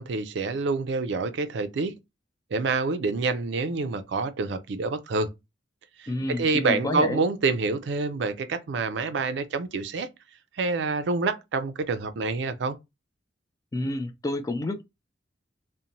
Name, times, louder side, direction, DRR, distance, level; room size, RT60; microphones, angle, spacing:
voice 1, 0.0-1.9 2.5-5.3 6.0-6.1 6.4-10.1 10.6-12.8, right 3 dB, 65° right, 0.4 m, -27 dB
voice 2, 6.1-7.2 13.7-14.8, left 2 dB, 20° left, 0.3 m, -29 dB
2.6 x 2.1 x 2.8 m
head